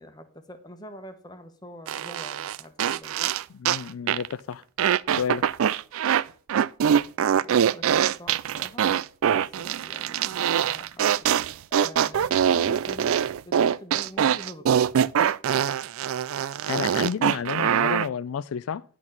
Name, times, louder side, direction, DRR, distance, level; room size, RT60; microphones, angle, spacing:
voice 1, 0.0-3.4 7.3-8.9 9.3-11.3 11.8-14.7, left 1 dB, 20° left, 1.1 m, -45 dB
sound 1, 1.9-3.8 4.1-4.3 4.8-6.2 6.5-18.1, right 9 dB, 70° right, 0.3 m, -23 dB
voice 2, 3.6-4.6 5.1-5.4 16.7-18.8, left 7 dB, 75° left, 0.4 m, -30 dB
11.0 x 4.0 x 7.3 m
head